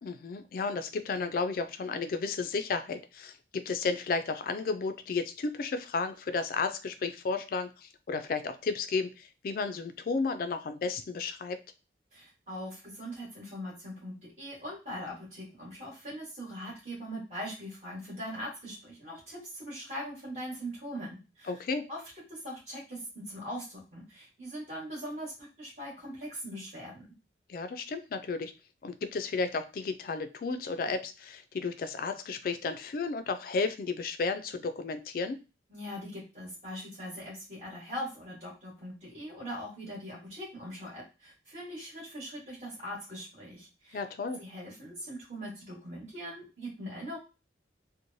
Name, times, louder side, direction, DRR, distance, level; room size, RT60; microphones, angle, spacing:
voice 1, 0.0-11.6 21.5-21.9 27.5-28.5 28.8-35.4 43.9-44.4, left 4 dB, 50° left, 9 dB, 0.3 m, -33 dB
voice 2, 12.1-21.6 21.9-22.0 22.3-27.1 35.7-44.0 44.4-47.2, equal, 45° right, -6 dB, 1.3 m, -41 dB
3.0 x 2.1 x 2.6 m, 0.30 s
head